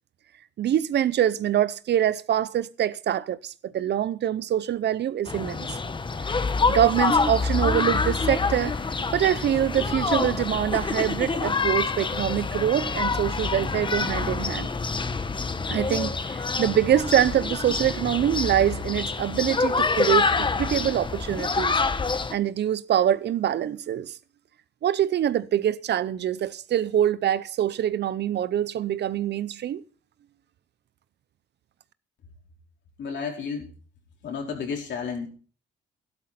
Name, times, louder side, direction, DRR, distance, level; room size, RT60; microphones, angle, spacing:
voice 1, 0.6-5.8 6.7-8.8 9.1-14.7 15.7-21.7 22.3-24.1 24.8-29.8, right 10 dB, 60° right, 0.7 m, -24 dB
sound 1, 5.3-22.3, left 4 dB, 25° left, 0.9 m, -26 dB
voice 2, 33.0-33.7 34.2-35.3, left 5 dB, 65° left, 4.5 m, -32 dB
12.5 x 12.0 x 4.2 m
cardioid pair, 90°, 20 cm